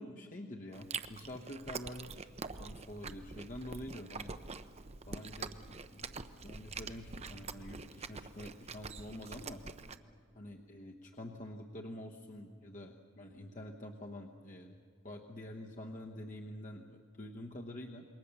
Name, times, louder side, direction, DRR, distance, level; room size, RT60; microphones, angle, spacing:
voice 1, 0.0-2.3 2.6-4.3 5.0-9.6 10.3-14.7 15.0-18.0, left 1 dB, 40° left, 1 dB, 1.1 m, -47 dB
Chewing mastication, 0.7-10.0, right 4 dB, 30° right, 0.7 m, -45 dB
27.0 x 22.0 x 7.0 m, 2.2 s
head